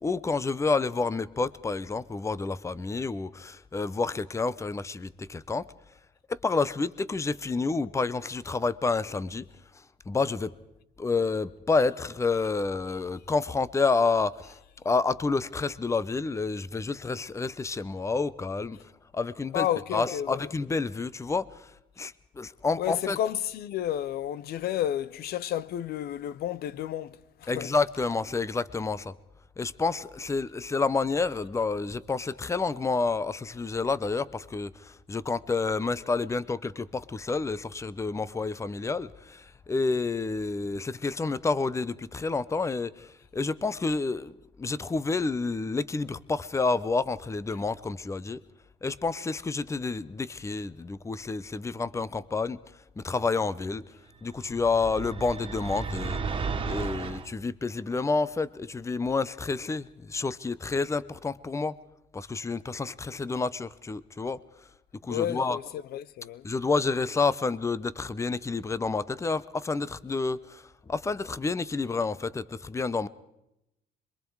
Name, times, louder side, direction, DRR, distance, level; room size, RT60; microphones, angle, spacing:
voice 1, 0.0-5.7 6.3-9.5 10.1-10.5 11.0-14.6 14.8-18.8 19.1-19.7 19.9-21.5 22.0-23.2 27.5-29.1 29.6-48.4 48.8-52.6 53.0-53.9 54.2-56.2 56.6-61.7 62.1-64.4 65.0-65.6 66.4-73.1, left 4 dB, 15° left, 0.8 m, -29 dB
voice 2, 19.5-20.5 22.8-27.7 65.0-66.5, left 11 dB, 70° left, 0.8 m, -31 dB
sound 1, 54.4-57.3, right 5 dB, 30° right, 2.0 m, -34 dB
26.5 x 23.0 x 4.8 m
cardioid pair, 110°, 17 cm